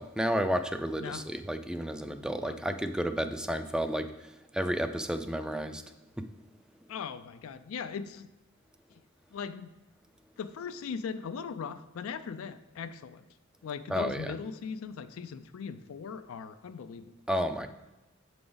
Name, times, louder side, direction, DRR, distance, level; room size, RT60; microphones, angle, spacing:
voice 1, 0.0-4.1 4.5-5.8 13.9-14.3 17.3-17.7, equal, 5° right, 9 dB, 0.3 m, -31 dB
voice 2, 6.9-8.3 8.9-9.0 9.3-9.7 10.4-13.2 13.6-17.1, left 6 dB, 90° left, 10 dB, 0.4 m, -39 dB
7.7 x 5.0 x 3.9 m, 1.1 s
head